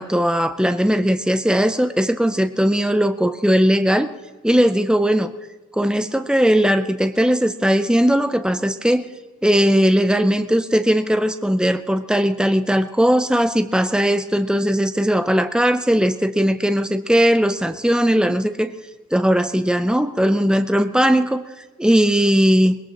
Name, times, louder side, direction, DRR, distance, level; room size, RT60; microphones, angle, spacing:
voice 1, 0.0-4.1 4.4-5.3 5.7-9.1 9.4-18.7 19.1-21.4 21.8-22.8, equal, 5° right, 9 dB, 0.5 m, -18 dB
22.5 x 20.0 x 3.0 m, 1.2 s
head